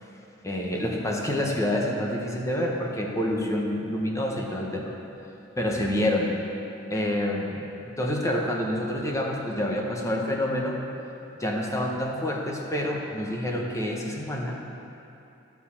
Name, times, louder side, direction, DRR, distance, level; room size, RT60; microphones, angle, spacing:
voice 1, 0.4-4.9 5.6-6.3 6.9-7.7 8.0-10.8 11.4-14.5, left 1 dB, 15° left, -1 dB, 1.0 m, -27 dB
13.0 x 4.7 x 7.1 m, 2.9 s
head